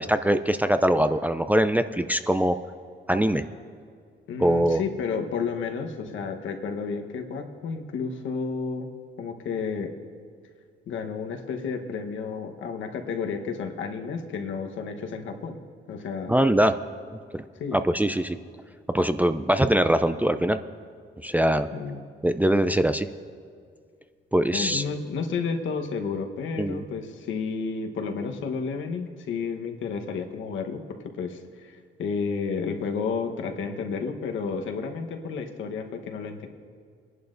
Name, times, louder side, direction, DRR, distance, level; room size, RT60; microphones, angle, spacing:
voice 1, 0.0-2.6 3.1-3.4 4.4-4.8 16.3-16.8 17.3-17.4 17.7-18.4 18.9-20.6 21.2-21.7 22.2-23.1 24.3-24.8 26.6-26.8, right 1 dB, 10° right, 9 dB, 0.4 m, -22 dB
voice 2, 4.3-8.9 9.2-9.9 10.9-15.6 15.9-16.4 17.5-17.8 21.7-22.0 24.5-30.8 31.2-36.5, left 5 dB, 75° left, 4 dB, 1.2 m, -31 dB
23.0 x 11.0 x 2.6 m, 2.1 s
cardioid pair, 90°, 20 cm